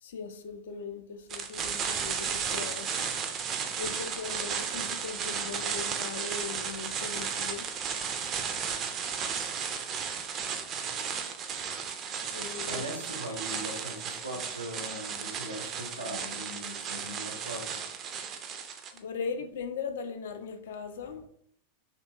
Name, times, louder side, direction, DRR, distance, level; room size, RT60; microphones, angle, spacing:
voice 1, 0.0-2.9 3.8-7.7 12.3-12.8 18.9-21.3, left 5 dB, 60° left, 7 dB, 0.3 m, -39 dB
sound 1, 1.3-19.0, right 6 dB, 30° right, 0.3 m, -34 dB
voice 2, 12.6-17.7, right 1 dB, 80° right, 2 dB, 0.5 m, -40 dB
2.7 x 2.6 x 2.3 m, 0.67 s
figure-of-eight pair, 90°, 0 cm